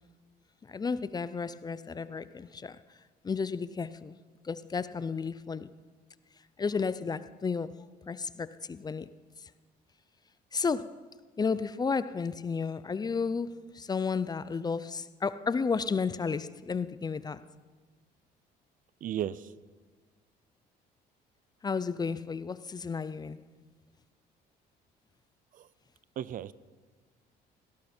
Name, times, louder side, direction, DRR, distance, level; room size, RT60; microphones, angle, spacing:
voice 1, 0.7-2.8 3.2-4.2 4.4-5.7 6.6-9.1 10.5-11.0 11.4-17.5 21.6-23.4, left 5 dB, 25° left, 0.5 m, -32 dB
voice 2, 19.0-19.5 25.5-25.7 26.2-26.5, right 10 dB, 55° right, 0.5 m, -35 dB
18.5 x 17.0 x 4.4 m
cardioid pair, 110°, 17 cm